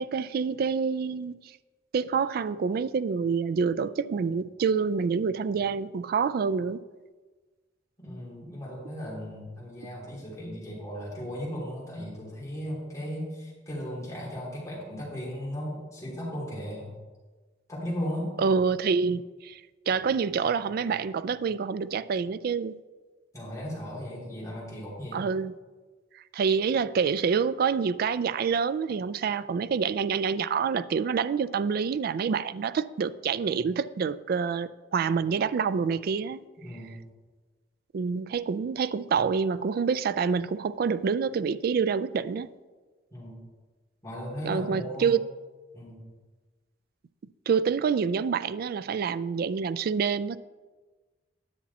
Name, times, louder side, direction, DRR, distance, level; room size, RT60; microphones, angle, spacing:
voice 1, 0.0-1.3 1.9-6.8 18.4-19.6 19.9-22.7 25.1-25.5 26.3-36.4 37.9-42.5 44.4-45.3 47.5-50.4, right 6 dB, 55° right, 0.3 m, -27 dB
voice 2, 8.0-16.9 17.7-18.3 23.3-25.3 36.6-37.0 43.1-43.4 44.0-45.1 45.7-46.1, equal, 15° left, 3.1 m, -36 dB
10.0 x 7.0 x 4.2 m
head